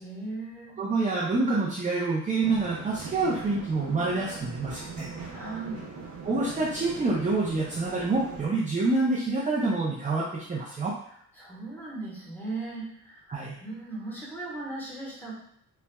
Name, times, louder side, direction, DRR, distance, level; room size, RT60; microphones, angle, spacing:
voice 1, 0.0-0.8 5.3-5.9 11.3-13.3 13.6-15.3, right 3 dB, 5° left, -6 dB, 1.3 m, -37 dB
voice 2, 0.8-5.1 6.2-10.9 13.3-13.6, right 3 dB, 25° right, -6 dB, 0.5 m, -27 dB
sound 1, 2.4-8.5, right 4 dB, 65° right, 0.8 m, -41 dB
4.1 x 2.3 x 2.2 m, 0.67 s
cardioid pair, 110°, 31 cm